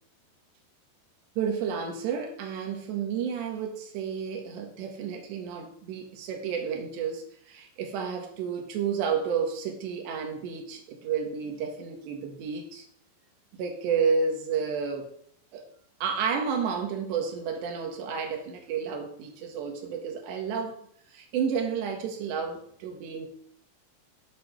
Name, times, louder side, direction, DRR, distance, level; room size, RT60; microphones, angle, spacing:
voice 1, 1.4-12.9 13.5-15.1 15.5-15.7 16.0-20.8 21.1-23.3, right 6 dB, 85° right, 4 dB, 3.9 m, -31 dB
10.5 x 7.0 x 6.4 m, 0.66 s
omnidirectional pair, 4.8 m